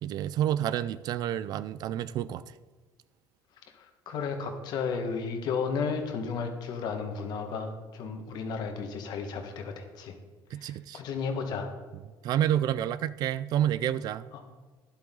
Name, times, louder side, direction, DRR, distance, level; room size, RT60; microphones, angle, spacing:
voice 1, 0.0-2.4 10.5-11.0 12.2-14.3, right 11 dB, 50° right, 0.4 m, -29 dB
voice 2, 3.8-10.1 10.6-11.7 14.3-14.4, left 5 dB, 55° left, 1.6 m, -33 dB
12.0 x 10.5 x 3.9 m
cardioid pair, 145°, 8 cm